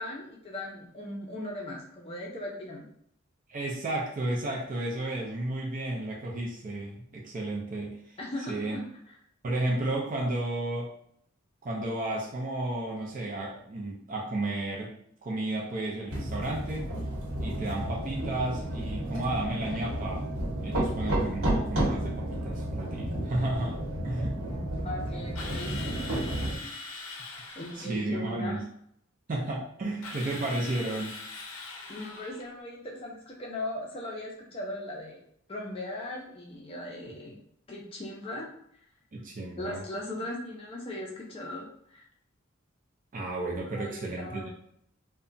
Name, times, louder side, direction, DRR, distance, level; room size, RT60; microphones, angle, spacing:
voice 1, 0.0-2.8 8.2-8.8 24.5-25.8 26.6-26.8 27.6-28.6 31.9-35.2 35.5-37.4 37.7-38.5 39.6-42.0 43.7-44.5, left 1 dB, 30° left, -2 dB, 0.5 m, -38 dB
voice 2, 3.5-8.1 8.5-8.8 9.4-10.9 11.6-16.9 17.4-20.3 20.6-23.8 24.0-24.4 27.8-28.7 29.3-31.2 39.1-39.8 43.1-44.5, right 2 dB, 40° right, -3 dB, 0.4 m, -33 dB
sound 1, 16.1-26.6, right 1 dB, 85° right, 1.0 m, -32 dB
Drill, 25.3-28.0 30.0-32.5, left 3 dB, 85° left, 0.5 m, -42 dB
2.8 x 2.2 x 2.5 m, 0.67 s
head